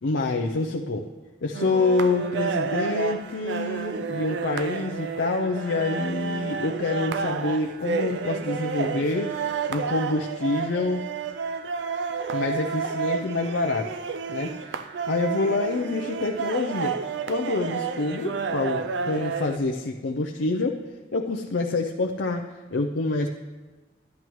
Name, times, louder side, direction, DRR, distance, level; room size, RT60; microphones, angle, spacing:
voice 1, 0.0-1.1 1.4-11.1 12.3-13.9 14.3-17.0 17.3-20.8 21.1-23.3, left 3 dB, 90° left, 2 dB, 0.5 m, -27 dB
sound 1, 1.5-19.6, right 5 dB, 75° right, 0.4 m, -30 dB
12.5 x 10.5 x 3.1 m, 1.2 s
head